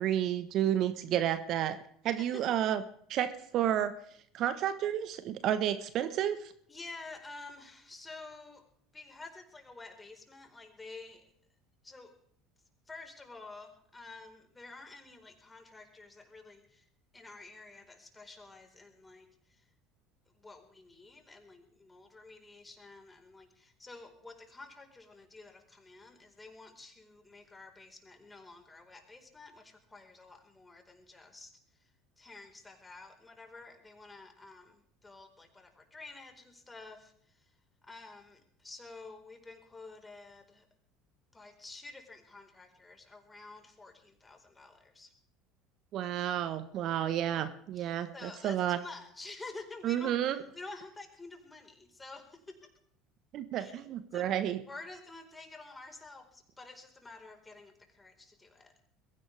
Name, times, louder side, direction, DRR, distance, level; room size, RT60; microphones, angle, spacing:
voice 1, 0.0-1.8 2.0-2.8 3.1-3.9 4.3-6.5 45.9-48.8 49.8-50.4 53.3-54.6, right 11 dB, 55° right, 12 dB, 1.3 m, -31 dB
voice 2, 6.7-8.7 8.9-11.2 11.8-12.1 12.9-16.9 17.1-19.6 20.3-31.5 31.8-31.9 32.2-37.5 37.8-40.7 41.3-45.1 47.8-52.7 53.5-53.8 54.1-54.3 54.7-58.7, left 3 dB, 15° left, 4 dB, 4.6 m, -50 dB
22.0 x 16.5 x 3.5 m, 0.63 s
hypercardioid pair, 70°, 0 cm